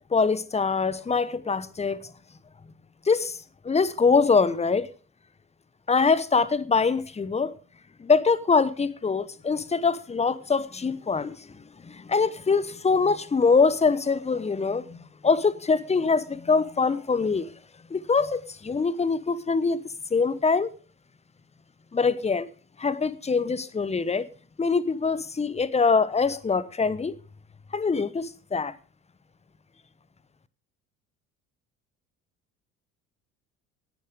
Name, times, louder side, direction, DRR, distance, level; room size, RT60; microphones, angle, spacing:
voice 1, 0.1-2.1 3.0-3.4 3.6-4.9 5.9-7.5 8.0-11.5 11.8-15.0 15.2-17.5 17.9-19.8 20.1-20.7 21.9-22.5 22.8-24.3 24.6-27.1 27.7-28.7, left 4 dB, 15° left, 1.0 m, -23 dB
18.0 x 11.0 x 3.7 m
figure-of-eight pair, 60°, 43 cm